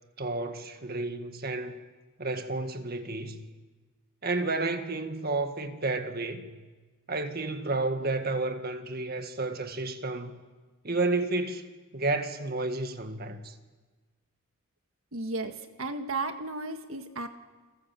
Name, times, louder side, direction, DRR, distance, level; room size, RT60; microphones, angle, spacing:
voice 1, 0.2-1.8 2.2-3.4 4.2-6.6 7.1-10.4 10.8-11.6 11.9-13.5, right 2 dB, 45° right, 1.8 m, -31 dB
voice 2, 15.1-17.3, right 2 dB, 75° right, 1.6 m, -34 dB
29.5 x 24.0 x 7.6 m
head